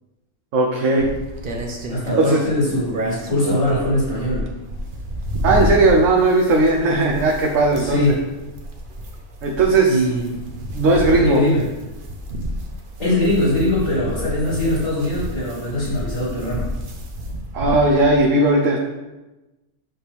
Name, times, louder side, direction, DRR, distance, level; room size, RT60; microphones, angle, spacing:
voice 1, 0.5-1.1 2.2-2.4 5.4-8.1 9.4-10.0 10.7-11.4 17.5-18.8, right 2 dB, 60° right, 0 dB, 1.1 m, -17 dB
sound 1, 1.0-18.2, equal, 40° right, 0.9 m, -30 dB
voice 2, 1.9-4.5 7.7-8.2 9.9-10.5 11.2-11.7 13.0-16.7, left 1 dB, 60° left, -7 dB, 3.0 m, -21 dB
7.6 x 6.3 x 3.5 m, 1.1 s
omnidirectional pair, 1.5 m